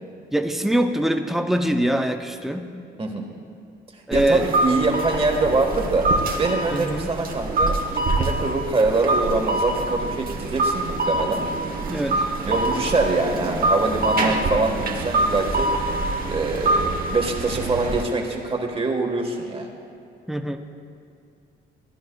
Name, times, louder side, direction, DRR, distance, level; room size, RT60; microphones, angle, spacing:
voice 1, 0.3-2.7 4.1-4.5 6.7-7.2 11.9-12.3 20.3-20.6, right 1 dB, ahead, 6 dB, 0.6 m, -23 dB
voice 2, 4.1-6.1 6.4-11.4 12.4-15.7 16.3-19.7, right 3 dB, 30° right, 2 dB, 1.4 m, -24 dB
sound 1, 4.1-18.0, right 2 dB, 45° right, 1.2 m, -25 dB
15.5 x 10.0 x 2.3 m, 2.4 s
cardioid pair, 90°, 20 cm